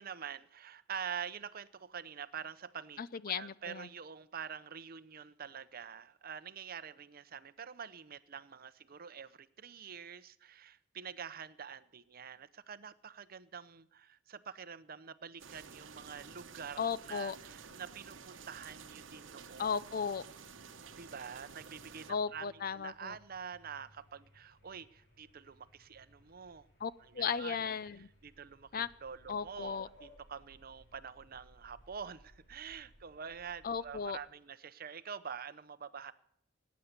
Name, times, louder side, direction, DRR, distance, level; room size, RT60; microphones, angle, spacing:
voice 1, 0.0-3.0 3.4-19.7 21.0-26.7 27.0-27.6 28.2-36.1, right 7 dB, 50° right, 14 dB, 0.7 m, -46 dB
voice 2, 3.0-3.9 16.8-17.4 19.6-20.2 22.1-23.2 26.8-28.1 28.7-28.9 29.3-29.9 33.6-34.2, left 6 dB, 50° left, 17 dB, 0.5 m, -36 dB
sound 1, 15.4-22.1, right 6 dB, 80° right, 1.0 m, -52 dB
sound 2, 16.1-34.2, equal, 65° left, 5.0 m, -64 dB
18.5 x 9.4 x 6.6 m, 0.73 s
head